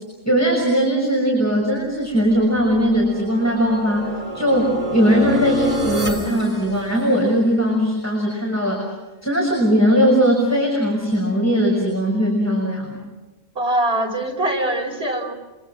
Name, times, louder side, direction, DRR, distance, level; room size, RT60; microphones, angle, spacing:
voice 1, 0.2-4.1 4.3-8.9 9.2-13.0, equal, 10° left, -2 dB, 6.4 m, -19 dB
sound 1, 2.3-7.5, right 1 dB, 30° right, 3.5 m, -30 dB
voice 2, 13.5-15.3, right 1 dB, 50° right, 1 dB, 5.9 m, -22 dB
28.0 x 26.0 x 6.1 m, 1.1 s
omnidirectional pair, 1.3 m